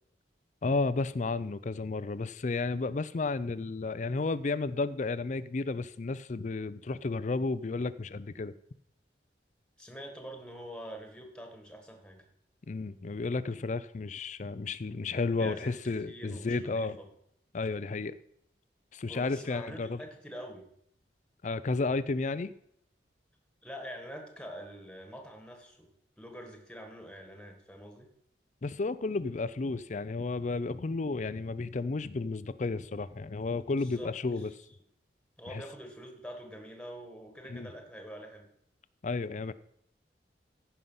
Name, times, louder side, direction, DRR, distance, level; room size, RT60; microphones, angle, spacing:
voice 1, 0.6-8.5 12.7-17.0 17.5-18.2 18.9-20.0 21.4-22.5 28.6-34.5 35.5-35.6 37.5-37.7 39.0-39.5, left 3 dB, 45° left, 16 dB, 0.4 m, -32 dB
voice 2, 9.8-12.2 15.4-17.1 19.1-20.7 23.6-25.9 26.2-28.1 33.7-34.5 35.4-38.5, equal, 5° left, 4 dB, 1.5 m, -45 dB
14.5 x 5.7 x 5.5 m, 0.72 s
head